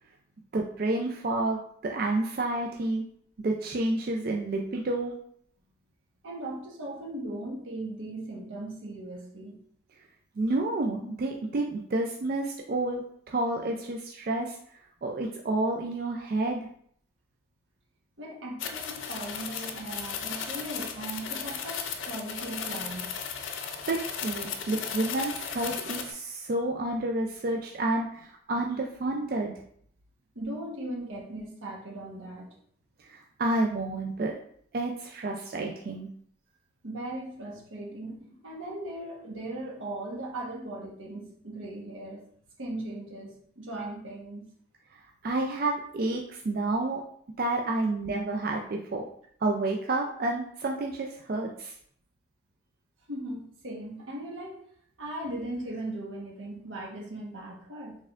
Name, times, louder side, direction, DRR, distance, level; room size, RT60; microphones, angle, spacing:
voice 1, 0.5-3.0 3.4-5.2 10.4-14.6 15.0-16.6 23.9-29.6 33.0-34.4 34.7-36.1 44.9-47.0 47.4-49.1 49.4-51.7, right 2 dB, 50° right, 1 dB, 0.4 m, -30 dB
voice 2, 6.2-9.6 18.2-23.1 30.3-32.5 36.8-42.2 42.6-44.5 53.1-54.6 55.0-58.0, right 1 dB, 85° right, -2 dB, 1.2 m, -38 dB
sound 1, 18.6-26.1, left 6 dB, 80° left, 0.5 m, -36 dB
4.2 x 3.5 x 2.4 m, 0.63 s
head